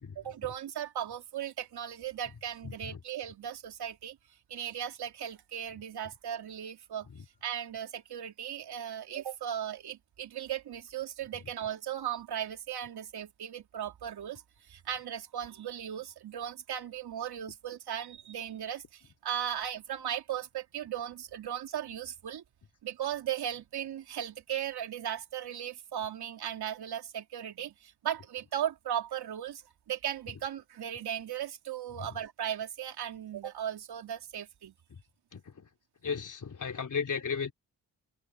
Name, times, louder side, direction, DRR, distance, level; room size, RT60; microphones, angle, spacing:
voice 1, 0.1-4.2 4.5-7.1 7.4-14.4 14.7-22.4 22.8-29.6 29.9-34.7, right 10 dB, 70° right, 3.3 m, -37 dB
voice 2, 35.3-35.6 36.0-37.5, left 6 dB, 50° left, 3.6 m, -35 dB
supercardioid pair, 55°, 39 cm